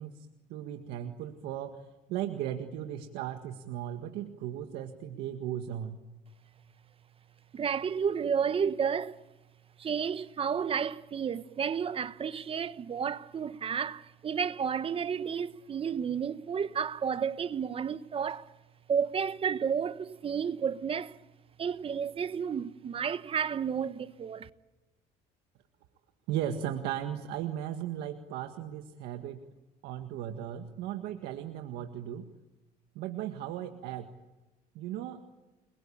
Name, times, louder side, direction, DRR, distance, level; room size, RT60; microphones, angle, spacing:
voice 1, 0.0-6.0 26.3-29.5 29.8-32.3 33.0-34.1 34.8-35.2, right 11 dB, 85° right, 1.8 m, -37 dB
voice 2, 7.5-9.2 9.8-18.5 18.9-21.2 21.6-24.5, right 7 dB, 35° right, 1.1 m, -31 dB
30.0 x 22.5 x 8.8 m
cardioid pair, 115°, 17 cm